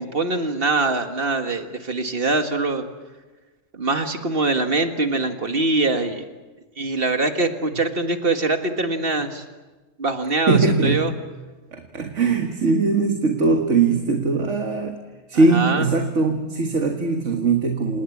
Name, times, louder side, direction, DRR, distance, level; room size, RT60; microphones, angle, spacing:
voice 1, 0.0-2.8 3.7-6.3 6.8-9.4 10.0-11.1 15.5-15.8, right 3 dB, 50° right, 7 dB, 2.0 m, -23 dB
voice 2, 10.5-11.1 11.7-15.0 15.3-18.0, right 3 dB, 80° right, 4 dB, 2.0 m, -20 dB
28.0 x 19.0 x 8.6 m, 1.2 s
omnidirectional pair, 1.2 m